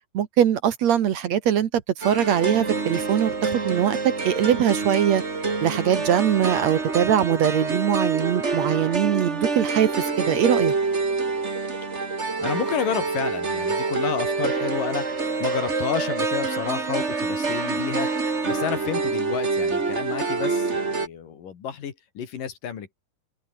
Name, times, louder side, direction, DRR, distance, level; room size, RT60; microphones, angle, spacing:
voice 1, 0.1-4.0 4.2-5.2 5.6-10.7, right 9 dB, 60° right, 2.0 m, -22 dB
sound 1, 2.0-21.1, right 4 dB, 25° right, 1.7 m, -26 dB
voice 2, 12.4-15.1 15.4-18.1 18.4-22.9, left 8 dB, 60° left, 4.1 m, -30 dB
open air
omnidirectional pair, 4.5 m